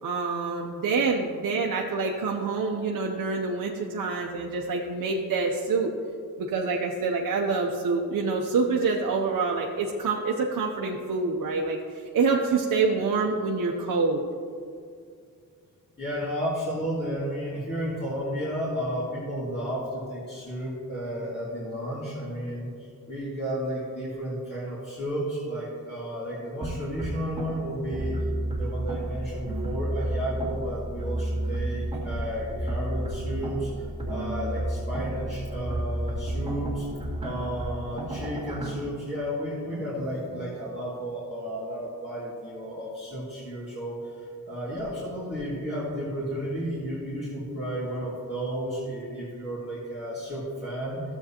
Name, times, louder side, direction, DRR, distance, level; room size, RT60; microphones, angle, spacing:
voice 1, 0.0-5.9 6.4-14.3, right 4 dB, 60° right, 0 dB, 0.8 m, -26 dB
voice 2, 16.0-28.3 28.6-36.9 37.2-51.0, equal, 30° left, -8 dB, 2.2 m, -33 dB
sound 1, 26.6-38.7, right 1 dB, 15° right, 2.1 m, -31 dB
12.5 x 7.9 x 2.9 m, 2.3 s
cardioid pair, 75°, 36 cm